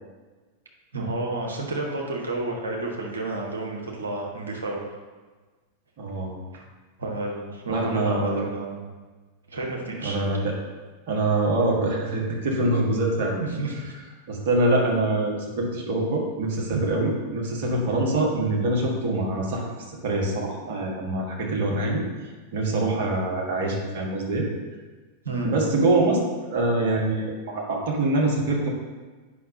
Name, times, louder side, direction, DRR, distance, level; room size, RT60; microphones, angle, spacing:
voice 1, 0.9-4.8 7.0-8.9 9.5-10.2 13.4-13.7 25.2-25.6, right 2 dB, 70° right, -1 dB, 1.2 m, -30 dB
voice 2, 6.0-6.6 7.7-8.5 10.0-10.5 11.1-13.4 14.3-19.7 20.0-22.0 22.5-24.5 25.4-26.2 26.5-28.7, right 2 dB, 50° right, -1 dB, 1.4 m, -24 dB
8.3 x 5.6 x 2.7 m, 1.3 s
figure-of-eight pair, 90°, 0 cm